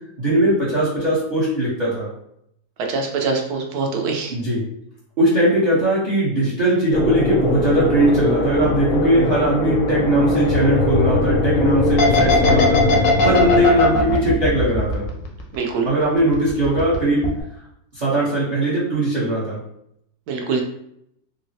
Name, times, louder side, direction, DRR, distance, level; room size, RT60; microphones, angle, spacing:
voice 1, 0.2-2.1 4.3-4.6 5.2-15.1 15.8-17.3 17.9-19.6, right 1 dB, 45° right, -7 dB, 0.6 m, -19 dB
voice 2, 2.9-4.3 15.5-15.9 20.3-20.6, right 4 dB, 70° right, 2 dB, 1.0 m, -23 dB
sound 1, 6.9-13.7, left 2 dB, 65° left, 0.9 m, -21 dB
sound 2, 12.0-15.7 16.0-17.0 17.2-17.4, left 3 dB, 85° left, 1.3 m, -19 dB
3.8 x 2.0 x 2.7 m, 0.74 s
omnidirectional pair, 2.0 m